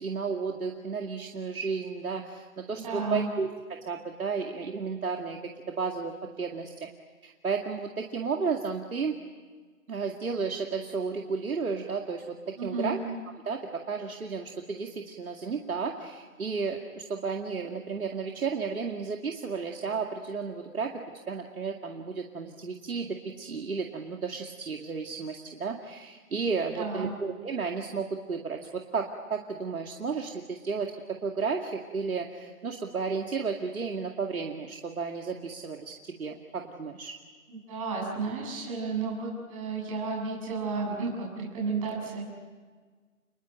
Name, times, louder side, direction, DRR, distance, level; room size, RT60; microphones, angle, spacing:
voice 1, 0.0-3.5 3.9-5.4 5.7-6.9 7.2-9.1 9.9-13.0 13.4-13.6 13.9-20.9 21.3-37.1, right 5 dB, 80° right, 2 dB, 2.4 m, -33 dB
voice 2, 2.7-3.3 12.6-12.9 26.7-27.1 37.5-42.2, right 4 dB, 25° right, -2 dB, 7.4 m, -32 dB
29.5 x 21.5 x 9.0 m, 1.5 s
hypercardioid pair, 165°, 42 cm